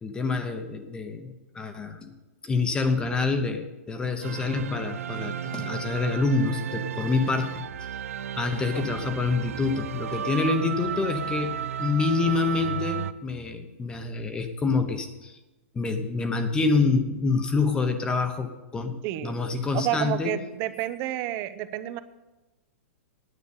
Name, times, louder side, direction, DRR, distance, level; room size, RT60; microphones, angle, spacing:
voice 1, 0.0-2.1 2.4-7.6 8.4-15.4 15.7-20.3, left 4 dB, 10° left, 8 dB, 1.0 m, -27 dB
sound 1, 4.2-13.1, right 9 dB, 85° right, 0.5 m, -34 dB
voice 2, 19.0-19.4 19.7-22.0, right 13 dB, 30° right, 13 dB, 0.7 m, -30 dB
9.7 x 8.0 x 8.6 m, 1.0 s
hypercardioid pair, 155°, 7 cm